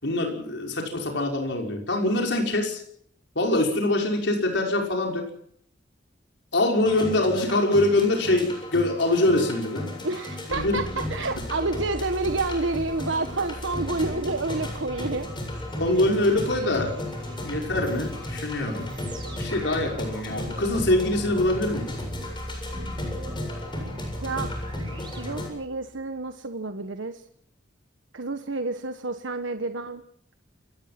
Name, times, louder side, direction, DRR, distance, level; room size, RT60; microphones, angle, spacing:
voice 1, 0.0-2.8 3.4-5.3 6.5-9.9 10.5-10.8 15.8-16.9 17.4-18.9 19.4-22.0, left 1 dB, 65° left, 2 dB, 5.9 m, -24 dB
sound 1, 6.8-25.5, left 1 dB, 25° left, 7.5 m, -35 dB
voice 2, 10.0-15.3 24.2-24.5 25.1-27.2 28.1-30.0, right 3 dB, 75° right, 7 dB, 1.4 m, -29 dB
sound 2, 10.5-26.1, equal, 25° right, 4.6 m, -39 dB
29.5 x 18.0 x 6.0 m, 0.66 s
head